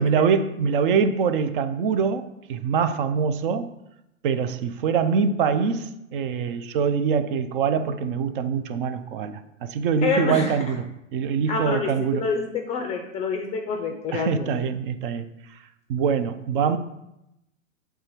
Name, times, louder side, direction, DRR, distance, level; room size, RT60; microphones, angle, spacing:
voice 1, 0.0-3.7 4.2-10.8 11.1-12.3 14.1-15.3 15.9-16.8, right 6 dB, 40° right, 0.5 m, -24 dB
voice 2, 10.0-10.6 11.5-14.5, left 4 dB, 15° left, 0.5 m, -27 dB
7.5 x 3.4 x 4.4 m
hypercardioid pair, 120°, 40 cm